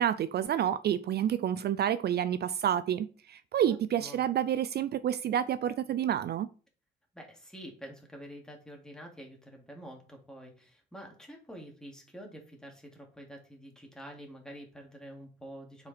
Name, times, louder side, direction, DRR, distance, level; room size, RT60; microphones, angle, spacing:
voice 1, 0.0-6.5, right 10 dB, 55° right, 0.4 m, -29 dB
voice 2, 3.6-4.2 7.1-15.9, equal, 5° left, 2.5 m, -47 dB
7.1 x 5.1 x 4.4 m
cardioid pair, 90°, 20 cm